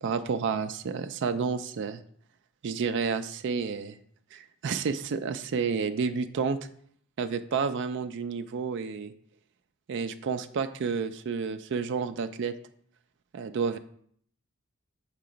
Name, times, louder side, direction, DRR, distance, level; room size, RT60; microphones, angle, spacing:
voice 1, 0.0-2.0 2.6-4.0 4.3-6.6 7.2-9.1 9.9-12.5 13.3-13.8, right 5 dB, 55° right, 9 dB, 0.4 m, -30 dB
6.7 x 2.9 x 5.0 m, 0.63 s
head